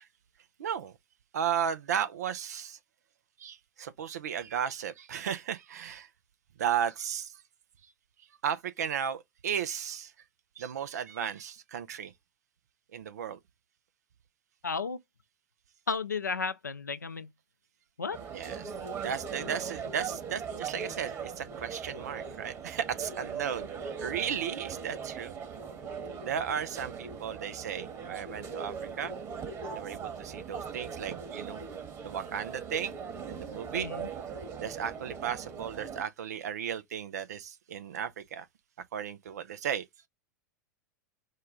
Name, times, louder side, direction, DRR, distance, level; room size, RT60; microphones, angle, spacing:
voice 1, 0.6-0.9 1.3-2.8 3.4-6.1 6.6-7.4 8.4-10.1 10.6-12.1 12.9-13.4 18.3-25.3 26.2-29.1 29.7-31.7 32.0-33.0 33.3-33.9 34.6-38.5 38.9-40.1, right 8 dB, 70° right, 0.7 m, -35 dB
voice 2, 14.6-15.0 15.9-17.3 18.0-18.2 33.7-34.1, left 5 dB, 85° left, 0.6 m, -33 dB
sound 1, 18.1-36.0, right 6 dB, 35° right, 1.7 m, -40 dB
4.7 x 2.4 x 4.6 m
figure-of-eight pair, 90°, 9 cm